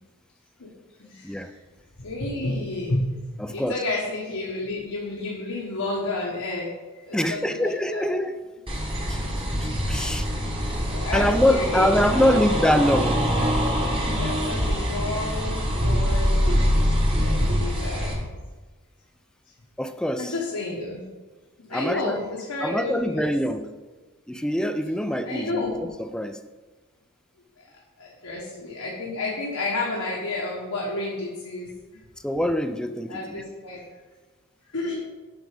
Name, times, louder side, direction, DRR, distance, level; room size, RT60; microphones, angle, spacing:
voice 1, 1.0-1.6 2.0-3.2 3.5-6.7 7.0-8.1 10.0-10.2 10.9-12.4 13.4-13.5 14.2-16.5 17.2-18.2 20.2-21.1 21.7-23.3 25.3-25.9 28.0-32.0 33.1-33.8 34.7-34.9, left 2 dB, 85° left, -3 dB, 1.3 m, -31 dB
voice 2, 3.4-3.8 7.1-8.4 9.1-9.2 9.6-10.3 11.1-13.3 19.8-20.3 21.7-22.2 22.6-23.7 24.3-26.4 32.2-33.4, equal, 5° left, 9 dB, 0.3 m, -24 dB
sound 1, 8.7-18.1, equal, 25° right, 1.3 m, -24 dB
7.7 x 4.8 x 5.0 m, 1.3 s
head